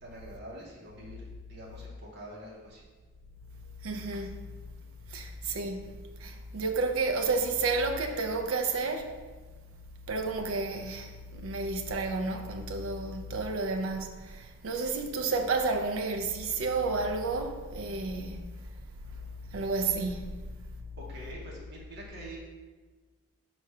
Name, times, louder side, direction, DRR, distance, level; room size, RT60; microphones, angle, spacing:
voice 1, 0.0-2.8 21.0-22.4, right 1 dB, 50° right, 0.9 m, -45 dB
voice 2, 3.8-4.3 5.1-5.8 6.2-9.1 10.1-18.5 19.5-20.3, right 3 dB, 75° right, 0.4 m, -31 dB
4.2 x 2.4 x 4.7 m
head